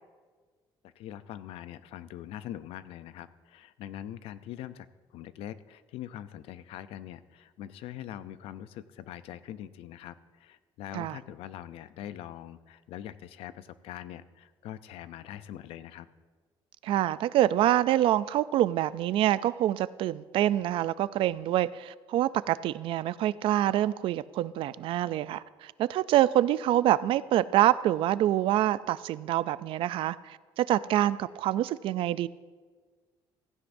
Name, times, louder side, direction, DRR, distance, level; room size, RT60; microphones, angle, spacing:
voice 1, 0.8-16.1, left 11 dB, 85° left, 14 dB, 0.5 m, -43 dB
voice 2, 16.8-32.3, right 13 dB, 65° right, 17 dB, 0.4 m, -26 dB
16.0 x 15.0 x 2.6 m, 1.4 s
cardioid pair, 150°, 10 cm